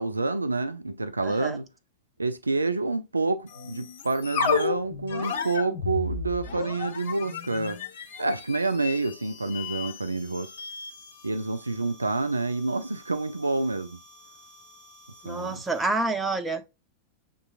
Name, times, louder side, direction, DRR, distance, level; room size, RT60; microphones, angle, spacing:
voice 1, 0.0-1.7 2.2-7.8 8.2-10.5 11.2-14.0 15.3-15.6, right 3 dB, 80° right, 0.4 m, -28 dB
voice 2, 1.2-1.6 15.2-16.7, right 3 dB, 10° right, 0.7 m, -28 dB
sound 1, 3.5-16.0, left 5 dB, 55° left, 0.8 m, -35 dB
6.7 x 3.1 x 2.4 m
figure-of-eight pair, 90°, 0 cm